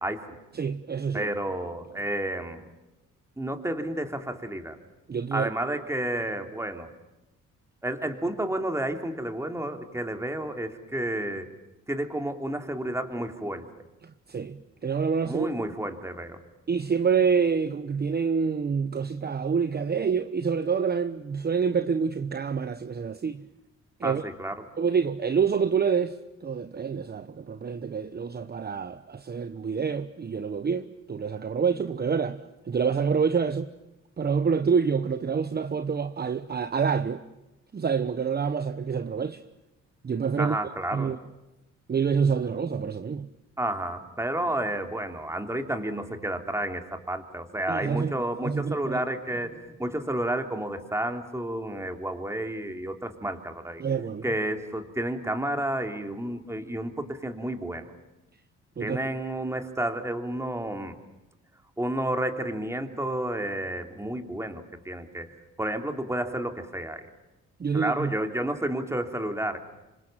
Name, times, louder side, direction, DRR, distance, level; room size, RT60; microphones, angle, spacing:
voice 1, 0.0-0.4 1.1-2.7 3.4-4.8 5.3-6.9 7.8-11.5 11.9-13.7 15.2-16.4 24.0-24.6 40.4-41.1 43.6-53.8 54.2-57.8 58.8-61.0 61.8-65.3 65.6-67.0 67.7-69.6, right 1 dB, 10° right, 3.3 m, -31 dB
voice 2, 0.5-1.3 5.1-5.5 14.3-15.5 16.7-23.4 24.0-24.2 24.8-33.7 34.2-37.2 37.7-39.4 40.0-40.6 40.9-41.2 41.9-43.3 47.7-48.1 48.4-49.0 53.8-54.2 58.8-59.0 67.6-68.1, right 6 dB, 35° right, 1.0 m, -27 dB
27.0 x 26.0 x 7.5 m
cardioid pair, 90°, 30 cm